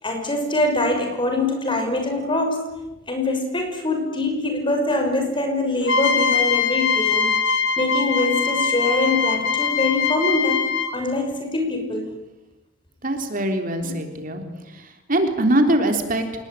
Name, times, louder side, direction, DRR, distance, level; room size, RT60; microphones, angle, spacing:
voice 1, 0.0-2.7 3.1-7.3 7.8-10.6 10.9-12.1, left 2 dB, 25° left, 5 dB, 5.9 m, -23 dB
sound 1, 5.8-11.1, left 5 dB, 70° left, 3.0 m, -22 dB
voice 2, 13.0-14.4 15.1-16.2, right 1 dB, 50° right, 5 dB, 3.7 m, -21 dB
27.5 x 20.5 x 9.3 m, 0.98 s
head